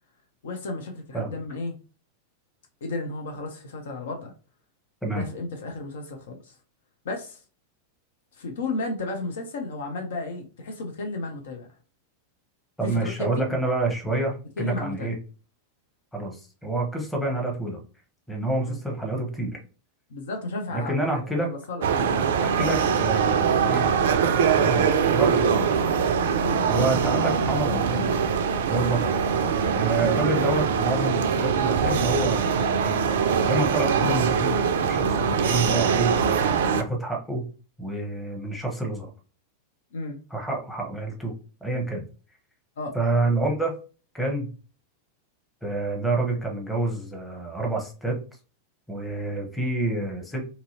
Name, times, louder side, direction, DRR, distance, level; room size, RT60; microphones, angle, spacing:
voice 1, 0.4-1.8 2.8-4.3 5.1-6.6 7.0-7.4 8.3-11.7 12.8-13.6 14.6-15.1 18.6-18.8 20.1-22.4 26.4-26.6 39.9-40.2 42.8-43.0, left 2 dB, 60° left, 3 dB, 0.5 m, -33 dB
voice 2, 12.8-15.2 16.1-17.8 18.3-19.6 20.7-21.5 22.4-23.9 24.5-25.7 26.7-28.1 28.7-29.1 29.7-33.0 33.4-36.2 36.8-37.5 37.8-39.1 40.3-41.3 41.6-42.1 42.9-43.7 44.1-44.5 45.6-48.2 48.9-50.5, right 2 dB, 5° left, 1 dB, 0.9 m, -28 dB
sound 1, 21.8-36.8, right 6 dB, 60° right, 0.3 m, -23 dB
2.8 x 2.6 x 2.7 m, 0.36 s
figure-of-eight pair, 90°, 0 cm